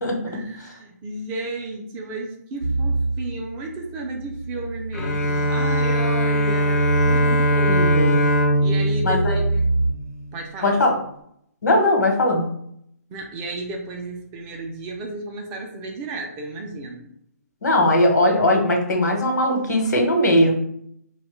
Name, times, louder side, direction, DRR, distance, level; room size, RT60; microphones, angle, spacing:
voice 1, 0.3-7.3 7.5-7.8 8.6-9.6 10.3-10.8 13.1-17.1, right 2 dB, 20° right, 1 dB, 0.4 m, -33 dB
sound 1, 2.6-9.9, right 2 dB, 70° right, 0.5 m, -25 dB
Bowed string instrument, 4.9-10.3, equal, 60° left, 0.5 m, -22 dB
voice 2, 7.2-8.2 9.0-9.4 10.6-10.9 11.6-12.5 17.6-20.5, left 1 dB, 85° left, 1 dB, 1.0 m, -19 dB
3.0 x 2.2 x 3.1 m, 0.71 s
hypercardioid pair, 150°, 9 cm